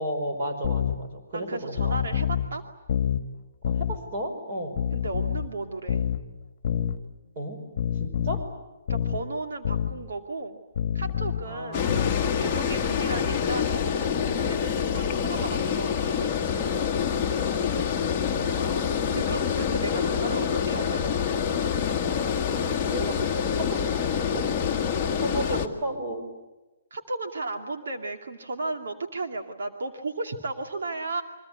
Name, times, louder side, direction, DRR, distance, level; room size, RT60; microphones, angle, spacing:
voice 1, 0.0-2.0 3.6-4.8 7.3-7.6 8.0-8.4 11.4-13.0 17.5-18.9 19.8-20.3 22.8-23.9 24.3-24.4 25.2-26.2, equal, 25° right, 4 dB, 5.2 m, -34 dB
sound 1, 0.6-1.0 1.8-2.5 2.9-3.2 3.6-4.0 4.8-5.5 5.9-6.2 6.6-7.0 7.8-8.5 8.9-9.2 9.6-9.9 10.8-11.4 11.9-12.2, left 8 dB, 35° left, 1.6 m, -27 dB
voice 2, 1.3-2.6 4.9-6.1 8.9-10.6 10.9-11.8 12.3-16.3 19.1-21.2 25.5-25.6 26.9-31.2, right 3 dB, 70° right, 5 dB, 2.5 m, -34 dB
Water, 11.7-25.7, left 7 dB, 10° left, 1.7 m, -26 dB
29.5 x 24.0 x 8.4 m, 1.1 s
hypercardioid pair, 180°, 0 cm